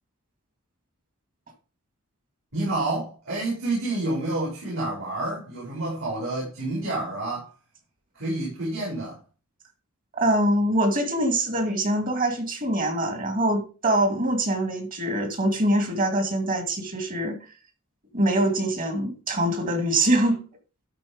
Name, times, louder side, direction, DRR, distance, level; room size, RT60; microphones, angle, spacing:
voice 1, 2.5-7.5 8.1-9.2, right 2 dB, 65° right, 4.6 m, -29 dB
voice 2, 10.1-17.4 18.1-20.4, right 1 dB, 40° right, 2.1 m, -24 dB
12.5 x 4.3 x 5.0 m
head